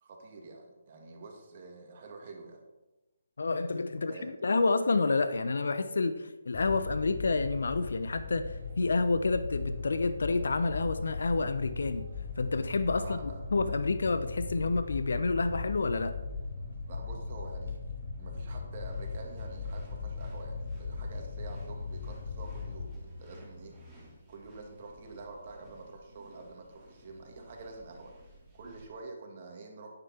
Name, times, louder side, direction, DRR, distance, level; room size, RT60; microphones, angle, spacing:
voice 1, 0.0-2.6 4.0-4.3 13.0-13.4 16.9-17.8 18.2-23.7 24.3-28.1 28.5-29.9, right 3 dB, 40° right, 2 dB, 2.4 m, -47 dB
voice 2, 3.4-12.1 12.4-16.1, left 3 dB, 65° left, 11 dB, 0.8 m, -29 dB
sound 1, 6.5-22.9, left 4 dB, 35° left, 1.3 m, -38 dB
sound 2, 7.1-24.1, equal, 60° right, 3.1 m, -53 dB
sound 3, 18.7-28.9, equal, 5° right, 4.3 m, -55 dB
10.0 x 10.0 x 4.4 m, 1.1 s
figure-of-eight pair, 145°, 0 cm